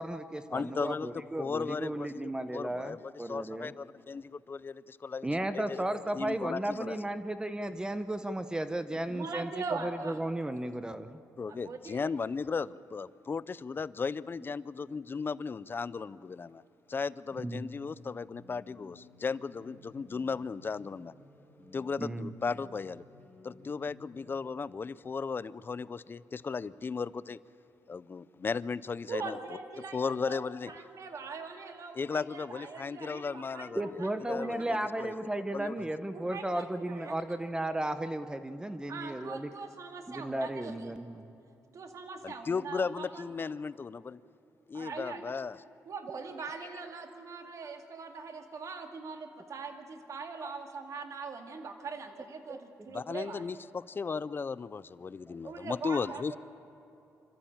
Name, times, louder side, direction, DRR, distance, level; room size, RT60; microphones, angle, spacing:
voice 1, 0.0-3.7 5.2-11.2 17.4-17.6 22.0-22.3 33.8-39.5 40.1-41.3 50.4-50.5 52.5-52.6, right 1 dB, 15° right, 10 dB, 0.9 m, -34 dB
voice 2, 0.5-1.1 1.4-2.2 2.5-5.3 5.5-7.0 11.4-16.6 16.9-21.1 21.7-23.0 23.4-27.4 27.9-29.4 29.9-30.7 31.9-33.8 34.3-34.7 35.0-35.1 35.5-35.7 42.2-44.2 44.7-45.6 52.9-56.4, left 5 dB, 35° left, 18 dB, 0.5 m, -36 dB
voice 3, 9.1-10.2 11.5-12.1 29.1-34.8 36.1-37.1 38.9-40.9 41.7-43.3 44.7-45.3 45.9-53.5 55.4-56.4, right 4 dB, 55° right, 5 dB, 2.2 m, -42 dB
sound 1, 18.0-24.4, left 2 dB, 20° left, 6.0 m, -56 dB
26.5 x 13.5 x 8.8 m, 3.0 s
cardioid pair, 95°, 6 cm